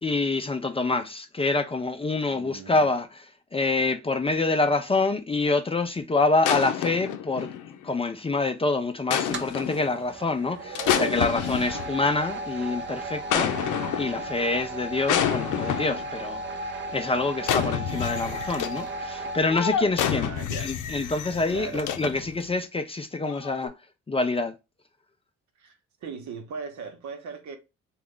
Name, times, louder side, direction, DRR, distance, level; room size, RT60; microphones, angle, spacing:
voice 1, 0.0-3.1 3.5-7.5 7.8-16.4 16.9-20.3 20.6-23.7 24.1-24.5, left 3 dB, 20° left, 0.4 m, -26 dB
voice 2, 2.3-2.9 20.1-20.7 21.5-21.9 25.6-27.6, right 5 dB, 70° right, 1.0 m, -38 dB
sound 1, 6.4-7.9 9.1-9.9 10.8-12.2 13.3-14.3 15.1-16.1 17.4-18.9 19.5-22.4 23.2-23.7, left 9 dB, 85° left, 0.6 m, -28 dB
sound 2, 9.3-19.4, right 2 dB, 40° right, 0.6 m, -35 dB
3.1 x 2.4 x 3.7 m
cardioid pair, 90°, 30 cm